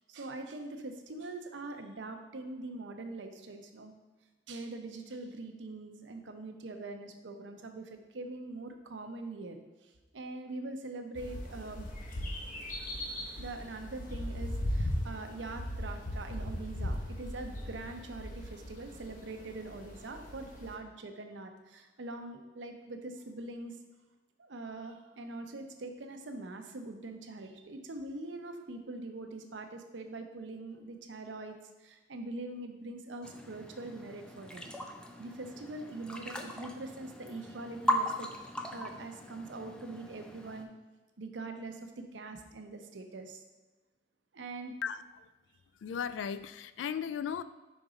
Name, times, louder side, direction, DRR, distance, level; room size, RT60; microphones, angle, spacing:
voice 1, 0.1-3.9 4.5-11.9 13.3-23.8 24.4-34.7 35.2-40.7 41.2-43.4 44.3-44.7, right 2 dB, 80° right, 6 dB, 0.7 m, -43 dB
sound 1, 11.1-20.7, left 1 dB, 45° left, 0.8 m, -38 dB
sound 2, 33.2-40.6, equal, 5° left, 0.4 m, -38 dB
voice 2, 44.8-45.3 45.8-47.4, left 7 dB, 85° left, 14 dB, 0.3 m, -36 dB
5.3 x 3.9 x 4.9 m, 1.2 s
head